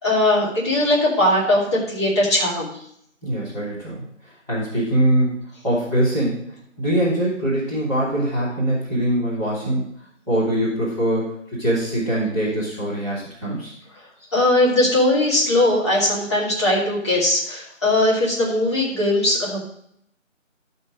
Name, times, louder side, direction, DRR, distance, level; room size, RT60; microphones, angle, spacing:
voice 1, 0.0-2.7 14.3-19.6, left 1 dB, 20° left, -7 dB, 2.7 m, -19 dB
voice 2, 3.2-4.0 4.5-9.8 10.3-13.7, right 1 dB, ahead, -33 dB, 1.5 m, -23 dB
11.5 x 5.5 x 6.4 m, 0.70 s
figure-of-eight pair, 170°, 39 cm